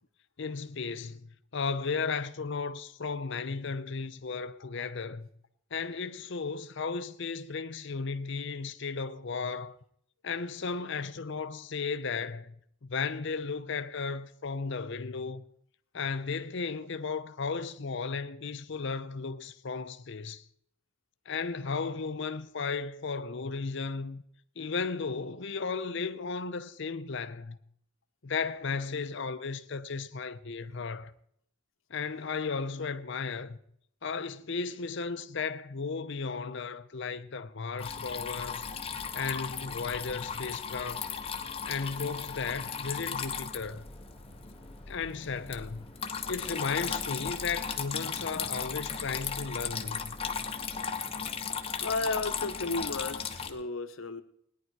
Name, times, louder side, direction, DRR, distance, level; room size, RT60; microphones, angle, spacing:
voice 1, 0.4-5.3 5.7-9.7 10.2-12.6 12.8-15.4 15.9-20.4 21.3-24.2 24.6-27.6 28.2-31.1 31.9-33.6 34.0-38.6 39.1-41.0 41.7-43.8 44.9-45.9 46.3-50.1, left 4 dB, 60° left, 0.7 m, -35 dB
Water tap faucet / Trickle dribble, 37.8-53.5, left 6 dB, 25° left, 0.9 m, -36 dB
sound 1, 38.3-53.7, equal, 5° left, 1.5 m, -57 dB
voice 2, 51.8-54.2, left 3 dB, 75° left, 1.0 m, -33 dB
17.5 x 10.5 x 4.7 m
head